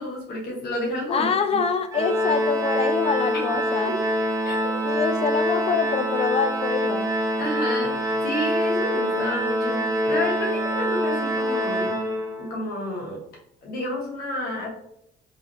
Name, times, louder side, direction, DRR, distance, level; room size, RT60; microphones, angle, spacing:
voice 1, 0.0-1.6 3.3-3.4 3.8-3.9 4.4-4.7 7.4-12.0 12.4-13.2 13.6-14.7, left 1 dB, 70° left, -3 dB, 1.5 m, -30 dB
voice 2, 1.1-4.0 4.8-7.1, left 6 dB, 35° left, 9 dB, 0.4 m, -25 dB
Organ, 1.9-12.7, equal, 20° right, 1.0 m, -25 dB
3.7 x 3.1 x 3.0 m, 0.77 s
cardioid pair, 110°, 17 cm